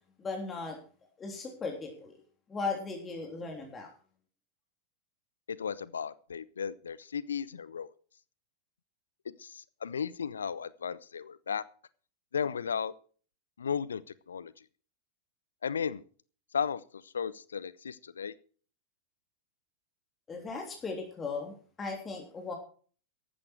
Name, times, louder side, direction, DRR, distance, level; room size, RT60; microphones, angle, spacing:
voice 1, 0.2-0.8 1.2-2.1 2.5-3.9 20.3-21.5 21.8-22.5, left 4 dB, 20° left, 2 dB, 3.4 m, -37 dB
voice 2, 5.5-7.9 9.4-11.6 12.3-12.9 13.6-14.0 14.3-14.5 15.6-16.0 16.5-18.3, left 7 dB, 70° left, 20 dB, 0.6 m, -35 dB
14.5 x 11.5 x 4.7 m, 0.41 s
figure-of-eight pair, 90°, 0 cm